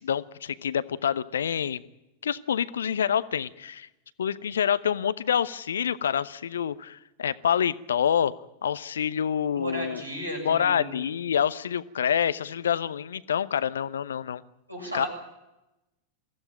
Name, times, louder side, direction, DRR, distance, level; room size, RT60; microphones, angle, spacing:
voice 1, 0.0-1.8 2.2-3.9 4.2-8.3 8.6-10.0 10.4-14.4 14.9-15.1, left 8 dB, 65° left, 17 dB, 0.8 m, -27 dB
voice 2, 9.5-11.0 14.7-15.1, equal, 90° right, 0 dB, 7.4 m, -35 dB
23.0 x 15.5 x 9.0 m, 0.95 s
figure-of-eight pair, 90°, 0 cm